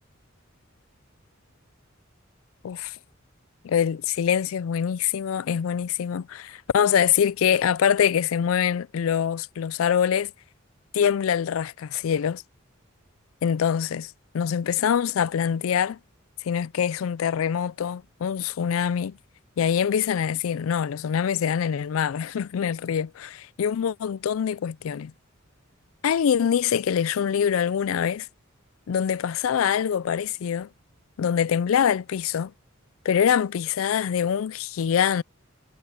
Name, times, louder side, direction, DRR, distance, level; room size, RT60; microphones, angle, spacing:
voice 1, 2.6-3.0 3.6-10.3 10.9-12.4 13.4-16.0 16.4-19.2 19.6-25.1 26.0-28.3 28.9-30.7 31.2-32.5 33.0-35.2, left 8 dB, 80° left, 0.4 m, -24 dB
head